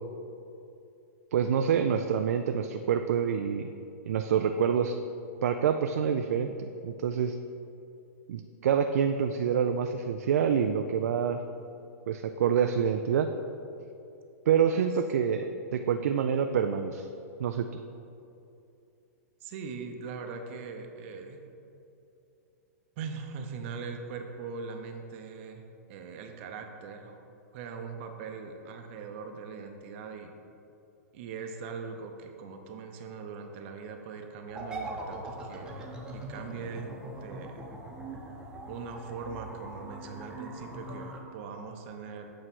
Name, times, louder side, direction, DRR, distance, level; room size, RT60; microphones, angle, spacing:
voice 1, 1.3-3.7 4.1-5.0 5.4-7.4 8.3-11.4 12.1-13.3 14.5-17.1 17.4-17.6, right 7 dB, 70° right, 6 dB, 0.3 m, -27 dB
voice 2, 19.4-21.4 23.0-25.6 25.9-27.2 27.5-30.3 31.1-37.7 38.7-42.3, right 5 dB, 50° right, 4 dB, 0.7 m, -41 dB
sound 1, 34.5-41.2, right 1 dB, 10° right, 0.9 m, -41 dB
8.1 x 3.2 x 6.0 m, 2.7 s
hypercardioid pair, 115°, 9 cm